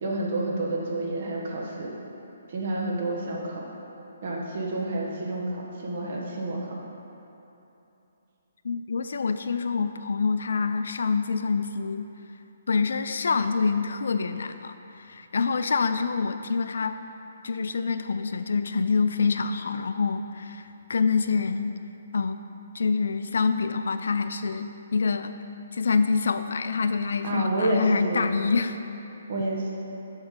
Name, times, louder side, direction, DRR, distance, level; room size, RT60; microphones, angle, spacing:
voice 1, 0.0-1.9 2.5-3.7 4.2-6.8 27.2-28.3 29.3-29.7, right 2 dB, 35° right, -2 dB, 1.1 m, -29 dB
voice 2, 8.6-12.1 12.7-17.0 17.4-21.8 22.1-22.4 22.7-25.4 25.7-28.8, left 4 dB, 65° left, 9 dB, 0.3 m, -26 dB
7.1 x 5.2 x 6.5 m, 3.0 s
hypercardioid pair, 180°, 0 cm